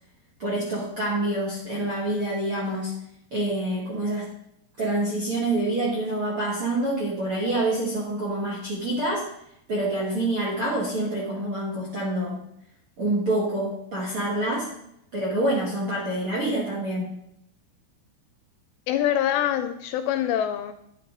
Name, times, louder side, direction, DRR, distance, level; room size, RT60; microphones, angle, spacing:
voice 1, 0.4-2.9 3.3-4.3 4.8-9.2 9.7-12.4 13.0-14.7 15.1-17.1, right 1 dB, 50° right, -4 dB, 1.6 m, -26 dB
voice 2, 18.9-20.7, left 11 dB, 80° left, 9 dB, 2.6 m, -25 dB
11.0 x 10.5 x 3.9 m, 0.76 s
omnidirectional pair, 5.3 m